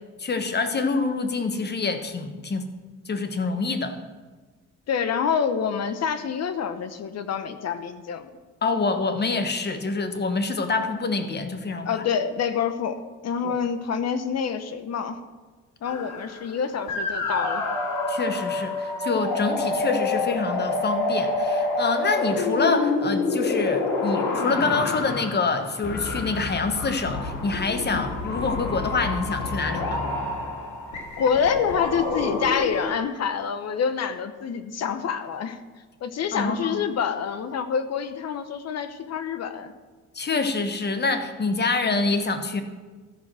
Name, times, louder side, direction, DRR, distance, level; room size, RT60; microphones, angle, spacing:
voice 1, 0.2-2.7 3.1-3.9 8.6-11.9 13.4-13.5 18.1-30.1 36.3-36.8 40.1-42.6, left 4 dB, 35° left, 8 dB, 1.2 m, -26 dB
voice 2, 4.9-8.3 11.8-15.2 15.8-17.7 27.9-28.0 31.2-35.6 36.0-39.7, left 7 dB, 60° left, 10 dB, 0.9 m, -27 dB
sound 1, 15.9-16.6 16.9-32.9, left 3 dB, 90° left, 2.0 m, -28 dB
14.0 x 4.7 x 6.1 m, 1.4 s
cardioid pair, 90°, 30 cm